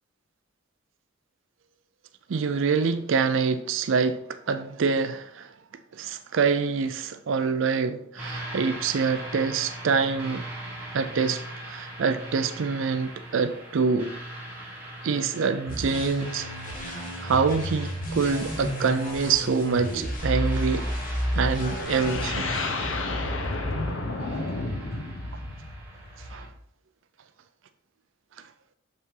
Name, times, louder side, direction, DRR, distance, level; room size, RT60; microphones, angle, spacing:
voice 1, 2.3-5.5 5.9-10.4 10.9-14.2 15.0-16.5 16.9-20.8 21.3-22.5 26.3-26.5, right 5 dB, 65° right, 0.4 m, -26 dB
sound 1, 8.1-26.5, right 1 dB, 10° right, 2.0 m, -40 dB
sound 2, 15.7-22.3, equal, 40° left, 1.4 m, -31 dB
sound 3, 21.7-26.6, left 2 dB, 70° left, 0.9 m, -31 dB
6.6 x 5.5 x 3.8 m
head